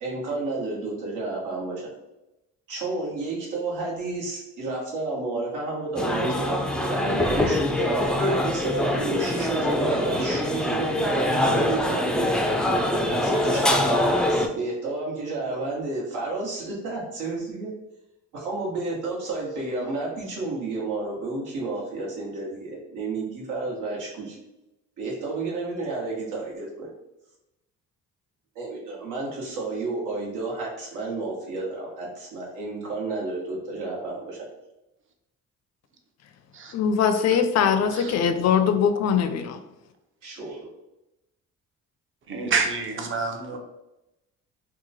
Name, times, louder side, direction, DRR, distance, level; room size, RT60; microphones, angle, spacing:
voice 1, 0.0-1.9 2.7-12.3 13.1-17.7 18.3-24.4 25.0-26.9 28.5-34.4 40.2-40.7, right 3 dB, 85° right, -4 dB, 1.2 m, -31 dB
sound 1, 6.0-14.5, left 1 dB, 5° left, 0.3 m, -24 dB
voice 2, 36.7-39.6, left 7 dB, 60° left, 9 dB, 0.5 m, -22 dB
voice 3, 42.3-43.6, right 4 dB, 40° right, 3 dB, 0.7 m, -27 dB
2.9 x 2.2 x 4.0 m, 0.94 s
cardioid pair, 90°, 30 cm